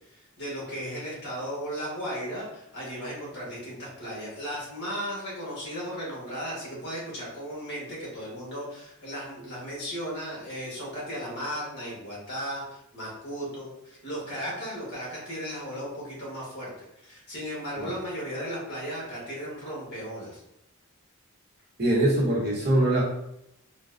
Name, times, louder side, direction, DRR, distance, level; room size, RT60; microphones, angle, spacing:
voice 1, 0.1-16.7 17.0-20.4, equal, 50° left, -5 dB, 1.4 m, -36 dB
voice 2, 21.8-23.0, right 1 dB, 50° right, -5 dB, 0.9 m, -23 dB
4.0 x 2.2 x 2.5 m, 0.81 s
head